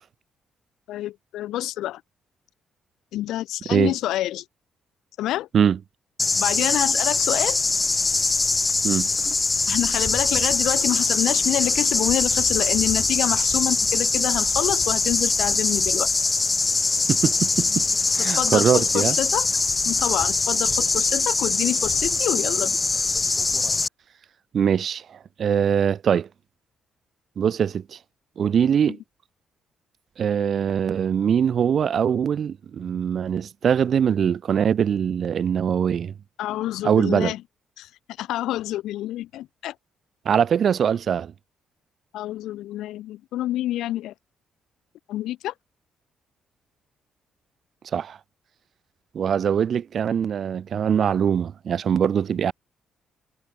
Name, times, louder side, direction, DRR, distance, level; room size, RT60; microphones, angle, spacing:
voice 1, 0.9-2.0 3.1-4.4 5.2-5.5 6.4-7.6 9.7-16.1 18.2-19.5 19.8-22.8 36.4-37.4 37.8-37.9 38.2-39.7 42.1-44.1 45.1-45.5, left 14 dB, 85° left, 0.5 m, -27 dB
sound 1, 6.2-23.9, left 3 dB, 25° left, 0.6 m, -22 dB
voice 2, 17.1-17.8 18.1-19.2 24.5-26.3 27.4-28.0 28.4-29.0 30.2-36.1 36.8-37.3 40.2-41.3 47.9-48.2 49.1-52.5, right 8 dB, 55° right, 1.0 m, -22 dB
cardioid pair, 90°, 0 cm